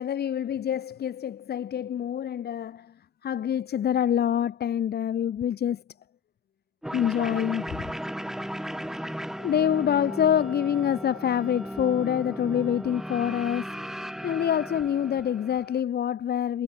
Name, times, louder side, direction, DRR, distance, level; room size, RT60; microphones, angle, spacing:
voice 1, 0.0-2.9 3.2-5.8 6.9-7.9 9.4-13.9 14.2-16.6, left 9 dB, 55° left, 1.0 m, -26 dB
sound 1, 6.8-15.8, equal, ahead, 1.9 m, -36 dB
cardioid pair, 90°, 20 cm